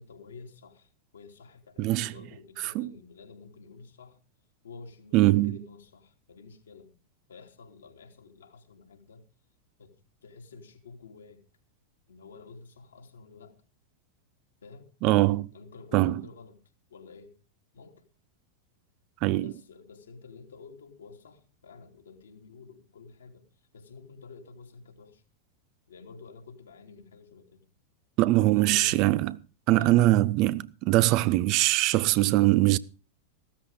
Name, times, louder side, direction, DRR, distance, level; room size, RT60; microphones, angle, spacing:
voice 1, 0.0-4.2 4.6-6.9 7.3-9.2 9.8-9.9 10.2-11.4 12.1-13.6 14.6-14.9 15.5-16.6 16.9-17.3 17.7-18.0 19.4-23.4 23.7-25.2 25.9-27.6 28.5-29.0 29.8-30.0, left 4 dB, 70° left, 3.0 m, -49 dB
voice 2, 1.8-2.1 2.7-2.9 5.1-5.5 15.0-15.5 15.9-16.1 19.2-19.5 28.2-29.3 29.7-32.8, right 17 dB, 40° right, 0.6 m, -22 dB
16.0 x 13.5 x 3.8 m
figure-of-eight pair, 90°, 0 cm